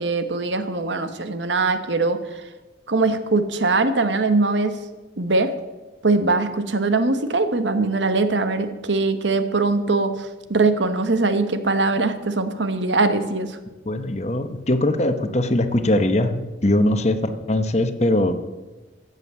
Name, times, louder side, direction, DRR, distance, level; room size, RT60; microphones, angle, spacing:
voice 1, 0.0-2.5 2.9-4.8 5.2-5.5 6.0-13.6, right 3 dB, 90° right, 10 dB, 1.2 m, -21 dB
voice 2, 13.9-18.3, left 1 dB, 40° left, 9 dB, 1.0 m, -21 dB
14.5 x 8.1 x 7.0 m, 1.2 s
head